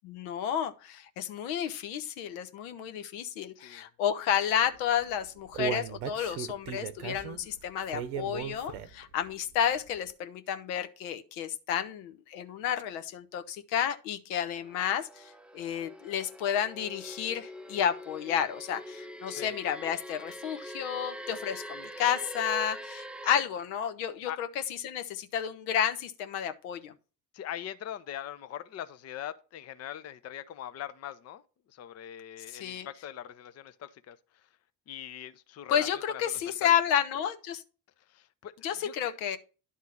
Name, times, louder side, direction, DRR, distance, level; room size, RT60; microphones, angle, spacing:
voice 1, 0.0-24.5 24.8-26.9 32.5-32.9 35.7-37.6 38.6-39.4, left 9 dB, 65° left, 0.9 m, -31 dB
voice 2, 3.6-3.9 19.3-19.6 24.3-24.4 27.3-31.4 31.7-34.5 34.9-36.7 38.1-39.2, left 11 dB, 35° left, 0.6 m, -42 dB
Human voice, 4.9-9.1 9.5-9.6 10.1-10.2, right 8 dB, 70° right, 0.9 m, -36 dB
sound 1, 14.5-23.4, equal, ahead, 0.6 m, -43 dB
11.0 x 3.7 x 7.2 m
figure-of-eight pair, 40°, 45 cm